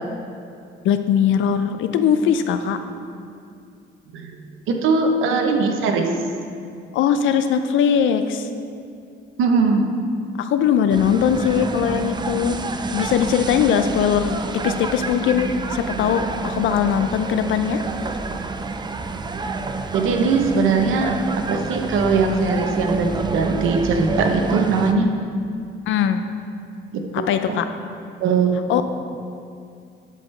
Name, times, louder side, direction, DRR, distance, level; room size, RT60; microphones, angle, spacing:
voice 1, 0.8-2.8 6.9-8.5 10.4-17.8 25.9-26.2 27.1-27.7 28.7-28.8, left 8 dB, 80° left, 9 dB, 0.5 m, -20 dB
voice 2, 4.7-6.1 9.4-9.8 19.9-21.1 21.5-25.1 26.9-27.6 28.2-28.5, right 4 dB, 85° right, 4 dB, 0.8 m, -20 dB
sound 1, 10.9-24.9, right 3 dB, 20° right, 0.4 m, -28 dB
11.5 x 5.0 x 3.3 m, 2.4 s
cardioid pair, 90°, 20 cm